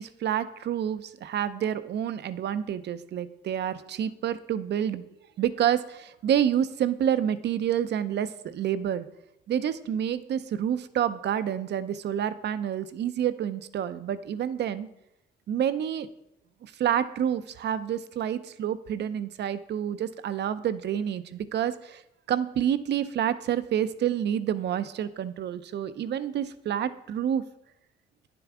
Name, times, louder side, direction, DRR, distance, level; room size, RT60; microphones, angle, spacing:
voice 1, 0.0-5.1 5.4-9.1 9.5-14.9 15.5-16.1 16.6-22.0 22.3-27.4, right 9 dB, 60° right, 14 dB, 0.5 m, -28 dB
9.7 x 6.9 x 3.6 m, 0.86 s
cardioid pair, 90°, 20 cm